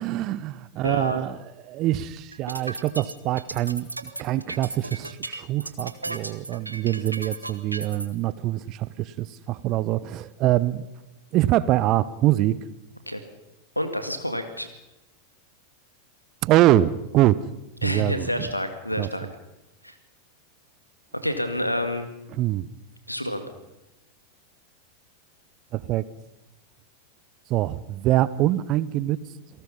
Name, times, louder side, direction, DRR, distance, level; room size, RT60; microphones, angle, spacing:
voice 1, 0.0-1.4 1.6-10.9 11.3-12.6 16.4-17.5 17.8-18.5 19.0-19.3 22.3-22.7 25.7-26.1 27.5-29.2, right 14 dB, 40° right, 18 dB, 0.8 m, -24 dB
voice 2, 0.8-1.2 13.1-13.2 13.8-14.7 17.8-19.3 19.8-19.9 21.2-22.1 23.1-23.5, left 1 dB, 90° left, 8 dB, 2.2 m, -28 dB
sound 1, 2.3-8.1, right 2 dB, 85° right, 1.2 m, -35 dB
28.0 x 18.5 x 5.6 m, 0.95 s
figure-of-eight pair, 90°, 0 cm